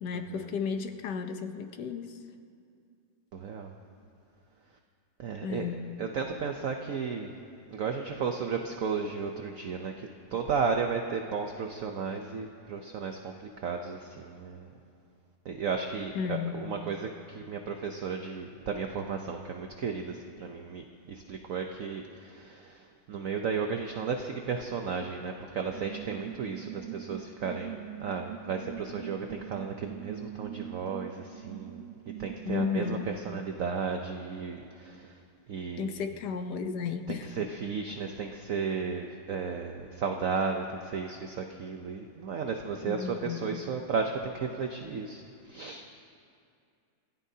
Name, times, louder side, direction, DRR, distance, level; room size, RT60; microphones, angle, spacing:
voice 1, 0.0-2.2 5.4-5.8 16.1-16.6 32.4-33.1 35.8-37.4 42.8-43.6, left 6 dB, 70° left, 7 dB, 1.4 m, -33 dB
voice 2, 3.3-3.7 5.2-7.3 7.7-13.3 13.6-14.7 15.5-22.8 23.1-31.8 32.2-33.0 33.2-35.1 35.5-35.9 37.1-45.2 45.5-45.8, right 5 dB, 60° right, 4 dB, 1.0 m, -34 dB
sound 1, 25.7-33.1, right 11 dB, 80° right, 1.3 m, -43 dB
29.0 x 16.0 x 2.8 m, 2.4 s
omnidirectional pair, 2.0 m